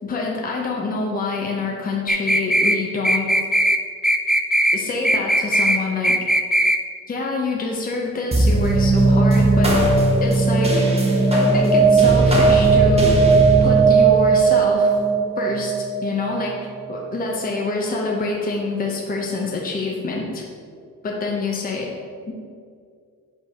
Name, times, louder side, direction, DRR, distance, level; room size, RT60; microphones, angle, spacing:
voice 1, 0.0-3.3 4.7-6.2 7.1-9.8 10.2-10.8 11.3-13.1 13.6-14.9 15.4-15.7 16.0-20.4 21.0-21.9 22.3-22.4, left 3 dB, 30° left, -1 dB, 0.9 m, -26 dB
sound 1, 2.1-2.8 3.0-4.8 5.0-5.8 6.0-6.8, right 1 dB, ahead, 0.3 m, -18 dB
sound 2, 8.3-17.0, right 3 dB, 20° right, 1.2 m, -16 dB
5.5 x 4.7 x 4.8 m, 2.2 s
cardioid pair, 90°, 30 cm